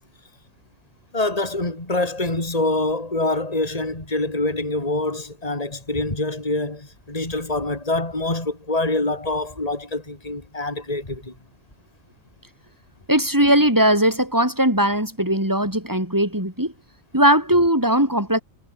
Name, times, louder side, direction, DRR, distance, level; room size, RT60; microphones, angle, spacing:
voice 1, 1.1-11.3, left 2 dB, 25° left, 4.1 m, -25 dB
voice 2, 13.1-16.7 17.1-18.4, right 1 dB, 15° right, 5.1 m, -19 dB
omnidirectional pair, 1.4 m